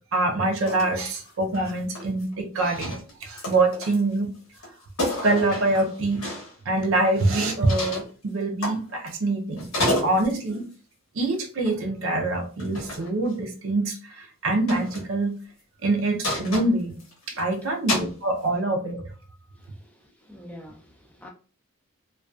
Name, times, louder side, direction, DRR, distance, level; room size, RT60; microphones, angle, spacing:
voice 1, 0.1-4.3 5.2-6.3 6.7-9.7 10.0-10.7 11.1-15.4 15.8-17.0 17.3-19.0, right 2 dB, 70° right, 0.5 m, -25 dB
sound 1, 0.7-0.9 1.2-2.3 2.7-4.1 4.5-4.7 5.0-6.5 7.6-8.1 8.6-9.3 9.6-10.5 11.6-11.8 12.6-13.1 14.7-15.1 16.2-17.4 17.9-18.1, left 1 dB, 80° left, 0.9 m, -30 dB
voice 2, 19.5-21.3, left 1 dB, 5° left, 0.4 m, -46 dB
2.5 x 2.3 x 2.3 m
head